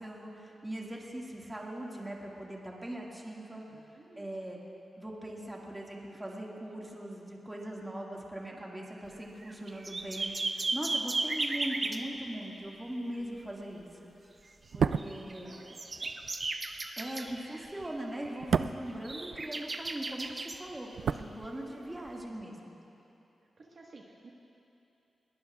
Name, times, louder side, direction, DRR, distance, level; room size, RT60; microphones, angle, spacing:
voice 1, 0.0-3.6 4.2-4.6 5.0-14.1 14.7-15.6 17.0-22.8, right 1 dB, 15° right, -2 dB, 2.0 m, -41 dB
voice 2, 3.7-4.3 15.4-15.8 20.7-21.3 21.7-22.0 23.6-24.3, right 2 dB, 55° right, -2 dB, 1.5 m, -55 dB
sound 1, 9.1-9.2 9.4-12.0 15.0-17.9 18.2-18.4 18.9-20.6 22.1-22.2, right 2 dB, 35° right, 0.7 m, -35 dB
sound 2, 14.6-19.9 20.2-22.0 22.3-22.5, right 6 dB, 80° right, 0.3 m, -34 dB
21.0 x 19.0 x 2.4 m, 2.9 s
cardioid pair, 95°, 0 cm